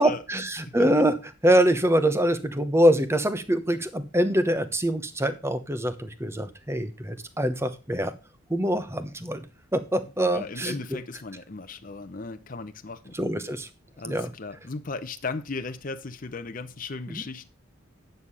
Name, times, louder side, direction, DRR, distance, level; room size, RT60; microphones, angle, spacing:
voice 1, 0.0-8.1 8.5-9.4 9.7-10.8 13.1-13.7 14.0-14.3 17.1-17.2, right 1 dB, 15° right, 0.9 m, -24 dB
voice 2, 10.3-13.1 14.0-17.5, left 3 dB, 40° left, 0.7 m, -36 dB
9.5 x 6.6 x 5.5 m
head